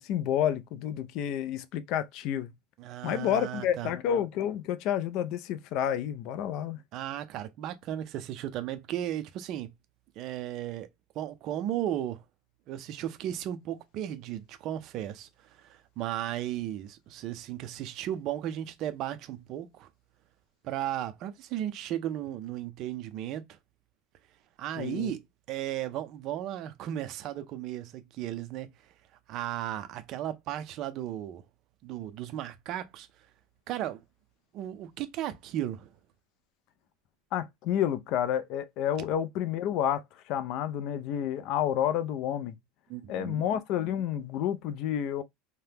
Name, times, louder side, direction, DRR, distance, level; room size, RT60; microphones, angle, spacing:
voice 1, 0.0-2.5 3.0-6.8 24.8-25.1 37.3-42.5 43.1-45.2, left 10 dB, 40° left, 0.3 m, -30 dB
voice 2, 2.8-3.9 6.9-9.7 10.2-10.9 11.2-12.2 12.7-19.9 20.6-23.4 24.6-25.2 25.5-28.7 29.3-31.4 31.8-33.1 33.7-34.0 34.5-35.9 42.9-43.4, right 12 dB, 35° right, 0.4 m, -35 dB
2.8 x 2.1 x 3.3 m
supercardioid pair, 175°, 0 cm